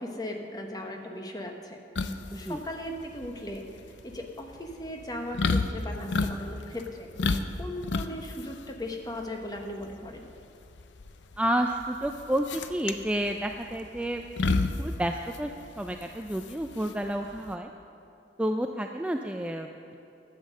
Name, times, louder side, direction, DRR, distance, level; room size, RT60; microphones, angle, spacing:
voice 1, 0.0-3.6 4.0-7.1 7.6-10.3, left 1 dB, 20° left, 3 dB, 1.1 m, -38 dB
sound 1, 1.9-17.5, left 3 dB, 85° left, 0.6 m, -32 dB
voice 2, 2.3-2.6 11.4-14.2 14.5-17.7 18.4-20.0, right 1 dB, 5° right, 4 dB, 0.3 m, -30 dB
11.5 x 8.2 x 6.6 m, 2.7 s
head